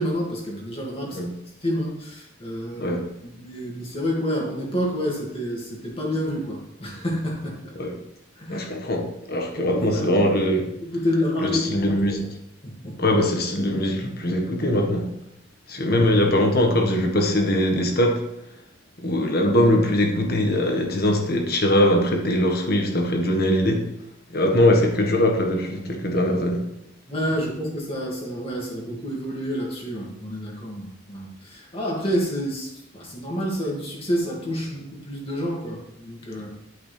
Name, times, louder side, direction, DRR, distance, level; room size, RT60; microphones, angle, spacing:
voice 1, 0.0-1.2 1.6-3.0 3.2-7.6 8.4-8.7 9.5-10.1 10.8-12.3 12.6-13.0 15.9-16.0 27.1-36.5, equal, 30° left, -2 dB, 2.2 m, -29 dB
voice 2, 8.5-10.6 11.4-12.2 13.0-15.1 15.7-18.2 19.0-23.8 24.3-26.6, left 1 dB, 50° left, 2 dB, 1.5 m, -21 dB
11.5 x 5.8 x 3.4 m, 0.82 s
head